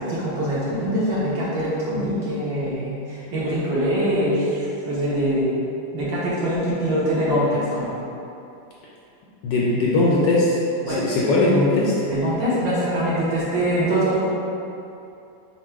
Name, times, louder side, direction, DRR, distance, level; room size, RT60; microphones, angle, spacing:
voice 1, 0.0-5.6 5.9-8.0 10.8-11.2 12.1-14.2, equal, 65° right, -8 dB, 1.6 m, -23 dB
voice 2, 9.4-10.6 10.9-11.9, left 2 dB, 70° left, -5 dB, 1.2 m, -19 dB
4.4 x 2.2 x 4.5 m, 2.7 s
omnidirectional pair, 2.3 m